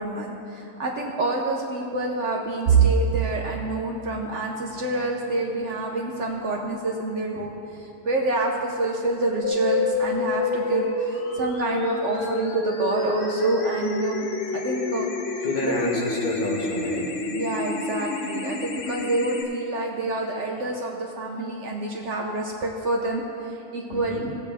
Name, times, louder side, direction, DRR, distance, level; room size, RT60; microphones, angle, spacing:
voice 1, 0.0-14.3 14.5-15.1 15.4-15.9 17.3-24.4, right 2 dB, 60° right, 0 dB, 1.0 m, -28 dB
sound 1, 2.7-14.5 14.9-15.2 15.5-15.7 16.6-17.1, right 7 dB, 80° right, 1.6 m, -30 dB
sound 2, 9.4-19.4, left 3 dB, 50° left, 1.0 m, -28 dB
voice 2, 15.4-17.1 23.9-24.3, left 1 dB, 35° left, -2 dB, 1.4 m, -29 dB
16.0 x 8.3 x 3.5 m, 2.7 s
omnidirectional pair, 1.6 m